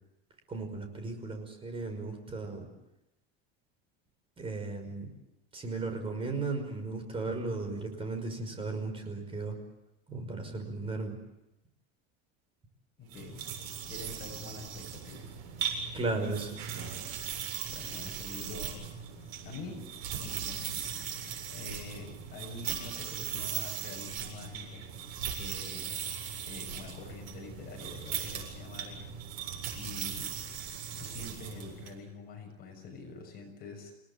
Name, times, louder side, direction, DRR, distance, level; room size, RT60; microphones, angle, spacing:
voice 1, 0.5-2.7 4.4-5.1 5.5-9.6 10.1-11.1 15.9-16.6, right 3 dB, 20° right, 6 dB, 5.5 m, -35 dB
voice 2, 13.0-13.4 13.9-15.4 17.6-18.8 19.4-19.8 20.2-21.1 21.5-24.8 25.3-29.2 29.7-30.4 31.0-33.9, left 4 dB, 30° left, 2 dB, 6.6 m, -45 dB
sound 1, 13.1-31.9, right 8 dB, 75° right, 7.9 m, -39 dB
29.0 x 18.5 x 8.5 m, 0.91 s
cardioid pair, 160°, 29 cm